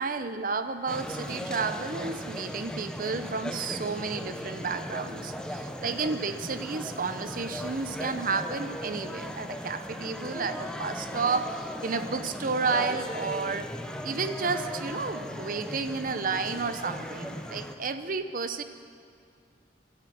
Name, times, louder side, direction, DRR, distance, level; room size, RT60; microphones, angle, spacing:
voice 1, 0.0-13.7 14.0-18.6, right 4 dB, 50° right, 10 dB, 0.7 m, -31 dB
sound 1, 0.9-17.7, equal, 5° left, 0.7 m, -37 dB
17.5 x 12.0 x 6.3 m, 2.3 s
head